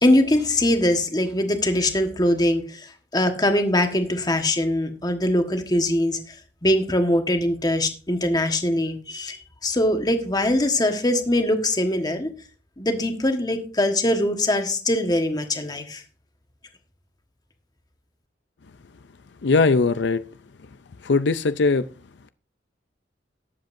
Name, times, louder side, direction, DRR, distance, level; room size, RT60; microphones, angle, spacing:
voice 1, 0.0-2.9 3.1-6.2 6.6-12.3 12.8-16.0, left 1 dB, 20° left, 1.4 m, -22 dB
voice 2, 19.4-20.2 21.0-21.9, left 4 dB, 70° left, 0.5 m, -20 dB
19.0 x 7.7 x 2.6 m
head